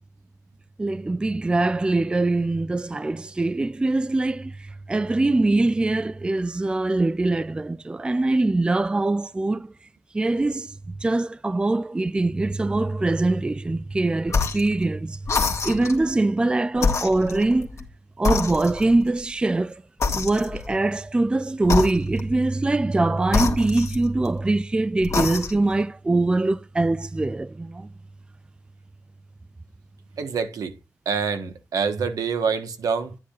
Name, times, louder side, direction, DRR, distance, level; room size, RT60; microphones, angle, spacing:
voice 1, 0.8-4.5 4.9-9.7 10.1-10.7 11.0-15.2 15.6-17.7 18.2-19.7 20.1-27.9, right 2 dB, 15° right, 0.4 m, -23 dB
sound 1, 14.3-14.7 15.3-16.0 16.8-17.9 18.3-19.0 20.0-20.8 21.6-22.4 23.3-24.4 25.0-25.7, left 4 dB, 55° left, 1.5 m, -26 dB
voice 2, 30.1-30.8 31.0-33.2, right 5 dB, 80° right, 1.2 m, -26 dB
10.0 x 9.4 x 2.4 m
wide cardioid pair, 110°, 6 cm